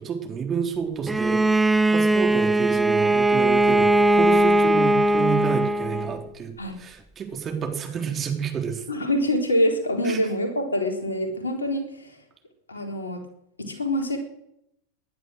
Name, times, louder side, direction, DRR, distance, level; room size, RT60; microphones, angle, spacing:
voice 1, 0.0-1.6 1.9-6.5 6.8-8.9 10.0-10.2, right 7 dB, 25° right, 3 dB, 3.8 m, -29 dB
Bowed string instrument, 1.1-6.2, right 1 dB, 5° right, 0.9 m, -20 dB
voice 2, 8.9-12.2 12.7-13.2 13.6-14.2, equal, 75° left, 4 dB, 3.8 m, -25 dB
19.5 x 11.0 x 6.5 m, 0.79 s
figure-of-eight pair, 90°, 0 cm